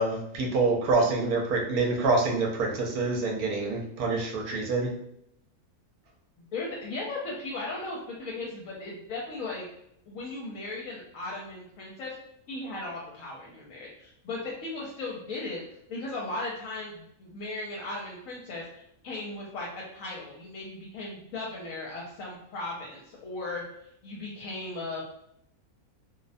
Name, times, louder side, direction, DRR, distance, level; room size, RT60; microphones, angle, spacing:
voice 1, 0.0-4.9, right 3 dB, 80° right, 1 dB, 1.1 m, -26 dB
voice 2, 6.5-9.6 10.1-12.2 12.5-15.6 15.9-23.6 24.0-25.2, left 2 dB, 70° left, -3 dB, 0.9 m, -37 dB
2.6 x 2.1 x 2.5 m, 0.75 s
omnidirectional pair, 1.5 m